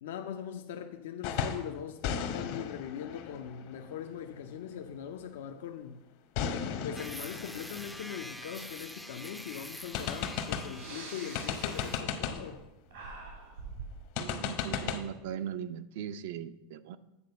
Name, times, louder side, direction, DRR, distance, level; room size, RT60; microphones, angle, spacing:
voice 1, 0.0-6.0 6.8-12.6, left 8 dB, 85° left, 0.6 m, -41 dB
sound 1, 1.2-1.7 2.0-4.6 6.4-9.1 9.4-9.5 9.9-10.8 11.3-12.6 14.2-15.0, left 7 dB, 60° left, 0.9 m, -36 dB
sound 2, 6.9-12.1, equal, ahead, 0.4 m, -46 dB
Breathing, 10.7-12.6 12.9-14.0, right 4 dB, 90° right, 2.9 m, -45 dB
voice 2, 14.2-17.0, right 9 dB, 70° right, 0.5 m, -39 dB
8.6 x 4.3 x 6.7 m
supercardioid pair, 150°, 0 cm